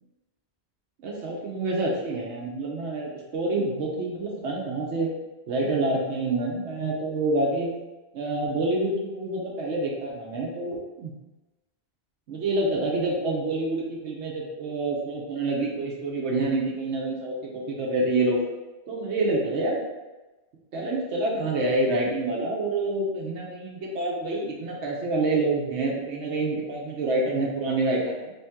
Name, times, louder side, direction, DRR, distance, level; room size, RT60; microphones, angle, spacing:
voice 1, 1.0-5.1 5.5-7.7 8.1-11.1 12.3-18.4 18.9-19.8 20.7-28.3, right 2 dB, 90° right, -2 dB, 1.0 m, -27 dB
3.6 x 2.8 x 3.5 m, 1.1 s
omnidirectional pair, 1.1 m